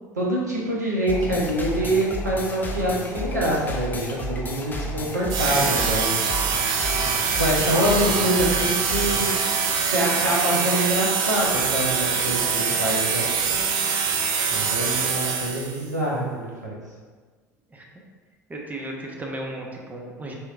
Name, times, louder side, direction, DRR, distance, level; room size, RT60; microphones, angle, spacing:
voice 1, 0.2-6.1 7.2-9.3 9.7-13.3 14.5-16.8, right 1 dB, 85° right, -4 dB, 0.7 m, -25 dB
sound 1, 1.1-9.4, left 1 dB, 20° left, 0.5 m, -32 dB
sound 2, 5.3-15.9, right 6 dB, 50° right, 0.4 m, -24 dB
voice 2, 18.5-20.3, right 1 dB, 20° right, 0 dB, 0.7 m, -35 dB
4.3 x 2.7 x 2.4 m, 1.5 s
figure-of-eight pair, 70°, 9 cm